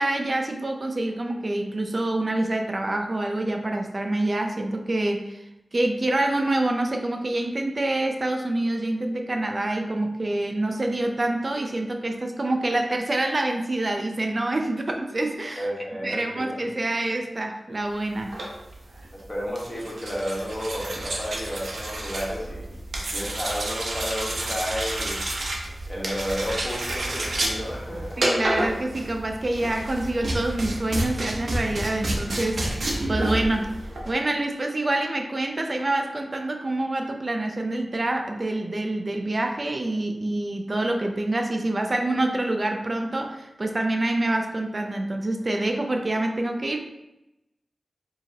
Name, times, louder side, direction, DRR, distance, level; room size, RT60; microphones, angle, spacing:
voice 1, 0.0-5.4 5.7-15.7 16.0-18.3 28.2-33.8 34.1-46.8, right 2 dB, 40° right, 3 dB, 0.4 m, -26 dB
voice 2, 15.6-16.6 19.1-22.7 23.1-25.2 25.9-28.2, equal, 20° left, -5 dB, 1.3 m, -32 dB
sound 1, 18.2-34.2, right 1 dB, 75° right, 0.8 m, -30 dB
4.8 x 2.8 x 2.8 m, 0.91 s
wide cardioid pair, 95°, 0 cm